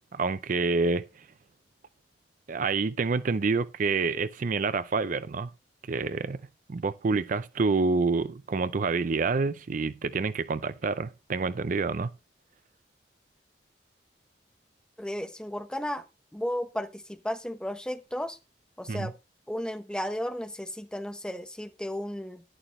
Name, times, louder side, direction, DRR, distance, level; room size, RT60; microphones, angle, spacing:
voice 1, 0.1-1.2 2.5-5.5 5.9-6.4 6.7-12.1 18.9-19.1, right 4 dB, 50° right, 0.5 m, -27 dB
voice 2, 15.0-16.0 16.3-18.4 18.8-19.1 19.5-22.4, equal, 5° left, 1.0 m, -34 dB
11.0 x 11.0 x 3.1 m
head